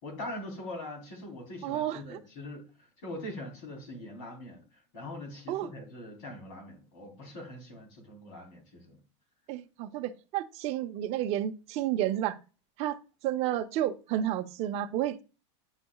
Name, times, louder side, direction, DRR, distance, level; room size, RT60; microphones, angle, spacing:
voice 1, 0.0-4.6 4.9-9.0, left 1 dB, 65° left, 3.9 m, -42 dB
voice 2, 1.6-2.2 5.5-5.7 9.5-12.4 12.8-15.2, right 12 dB, 45° right, 0.7 m, -31 dB
10.5 x 4.3 x 2.3 m
supercardioid pair, 140°, 15 cm